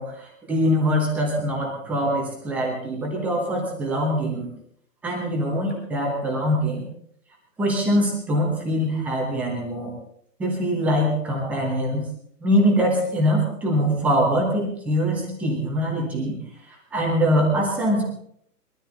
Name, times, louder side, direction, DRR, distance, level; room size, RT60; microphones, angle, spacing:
voice 1, 0.0-4.5 5.0-6.8 7.6-9.9 10.4-12.1 12.4-16.4 16.9-18.0, equal, 5° right, -1 dB, 1.0 m, -23 dB
21.5 x 12.5 x 3.8 m, 0.65 s
hypercardioid pair, 165°, 49 cm